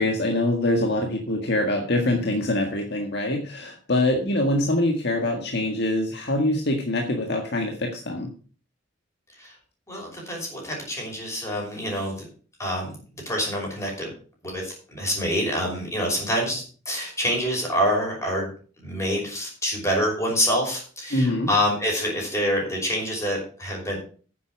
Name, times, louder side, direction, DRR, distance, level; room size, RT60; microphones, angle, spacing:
voice 1, 0.0-8.3 21.1-21.5, left 1 dB, 60° left, 3 dB, 1.8 m, -24 dB
voice 2, 9.9-12.3 12.6-14.1 14.4-18.5 18.8-24.0, equal, 15° left, -1 dB, 5.6 m, -26 dB
9.7 x 8.3 x 6.2 m, 0.41 s
head